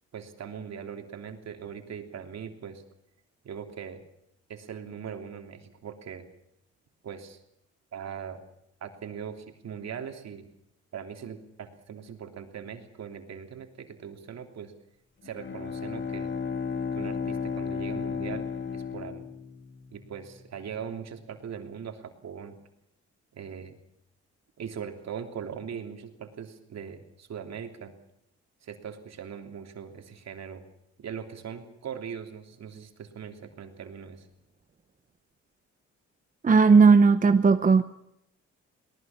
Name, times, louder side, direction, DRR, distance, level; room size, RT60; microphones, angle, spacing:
voice 1, 0.1-2.8 3.4-4.0 4.5-6.3 7.0-7.4 7.9-8.4 8.8-10.5 10.9-14.7 15.2-16.3 16.9-19.3 19.9-22.5 23.3-23.8 24.6-27.9 28.6-30.6 31.0-34.3, right 7 dB, 60° right, 5 dB, 3.2 m, -40 dB
Bowed string instrument, 15.2-20.0, left 6 dB, 35° left, 2.0 m, -33 dB
voice 2, 36.4-37.8, right 5 dB, 25° right, 11 dB, 0.8 m, -17 dB
23.0 x 19.0 x 7.3 m, 0.78 s
cardioid pair, 90°, 30 cm